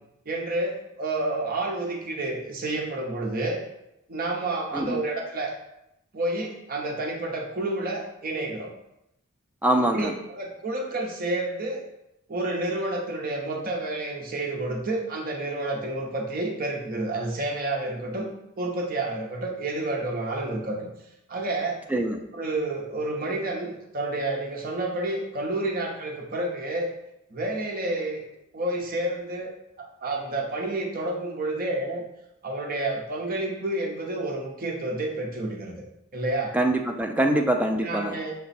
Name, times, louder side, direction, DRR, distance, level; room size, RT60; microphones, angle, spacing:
voice 1, 0.3-3.6 4.1-5.5 6.1-8.7 9.8-11.8 12.3-18.3 18.6-20.9 21.3-21.8 22.3-26.9 27.3-28.2 28.5-29.5 30.0-32.1 32.4-35.8 36.1-36.5 37.2-37.3 37.8-38.3, right 2 dB, 45° right, 0 dB, 0.8 m, -29 dB
voice 2, 9.6-10.1 21.9-22.2 36.5-38.2, right 1 dB, 5° right, 3 dB, 0.4 m, -24 dB
5.8 x 2.2 x 4.1 m, 0.85 s
head